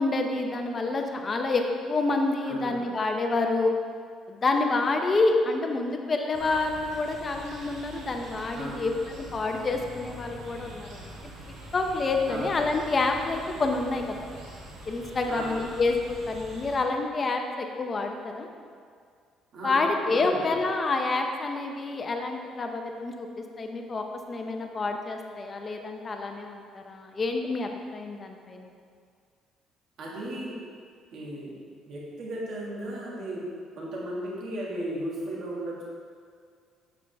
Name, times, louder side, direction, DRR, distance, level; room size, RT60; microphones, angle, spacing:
voice 1, 0.0-1.6 1.9-3.7 4.3-11.2 11.7-14.2 14.9-16.0 16.3-18.5 19.6-23.3 23.6-28.7, left 3 dB, 20° left, 4 dB, 0.6 m, -28 dB
voice 2, 2.4-2.8 8.5-8.9 12.3-12.6 15.3-15.5 19.5-20.5 30.0-30.6 31.1-31.5 31.9-33.4 33.8-35.9, right 1 dB, 50° right, -5 dB, 1.9 m, -35 dB
sound 1, 6.3-16.8, right 1 dB, 70° right, 1.6 m, -44 dB
8.5 x 7.4 x 3.4 m, 2.1 s
cardioid pair, 180°, 0 cm